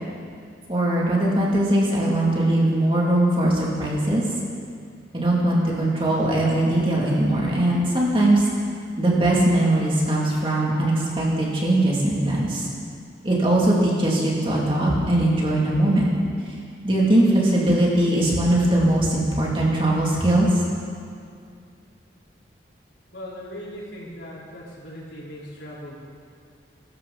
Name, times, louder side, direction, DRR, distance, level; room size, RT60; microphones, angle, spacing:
voice 1, 0.7-4.2 5.1-8.4 9.0-12.6 13.2-16.1 16.8-20.6, right 1 dB, 30° right, -4 dB, 2.9 m, -20 dB
voice 2, 23.1-26.0, equal, 80° left, -7 dB, 4.6 m, -38 dB
22.0 x 13.0 x 4.3 m, 2.3 s
head